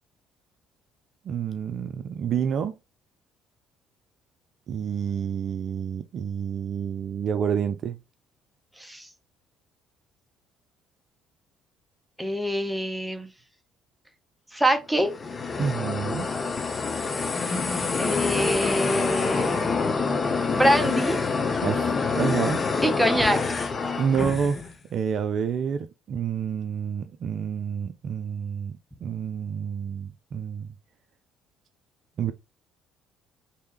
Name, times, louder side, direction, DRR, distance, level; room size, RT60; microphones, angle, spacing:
voice 1, 1.3-2.7 4.7-8.0 15.6-16.3 21.6-22.6 24.0-24.6 24.9-28.7 29.0-30.7 32.2-32.3, right 7 dB, 55° right, 0.4 m, -28 dB
voice 2, 8.8-9.1 12.2-13.3 14.5-15.1 18.0-19.6 20.5-21.2 22.8-23.4, equal, 5° right, 0.9 m, -24 dB
sound 1, 15.0-24.7, left 4 dB, 35° left, 0.5 m, -26 dB
3.2 x 2.7 x 3.0 m
hypercardioid pair, 55°, 0 cm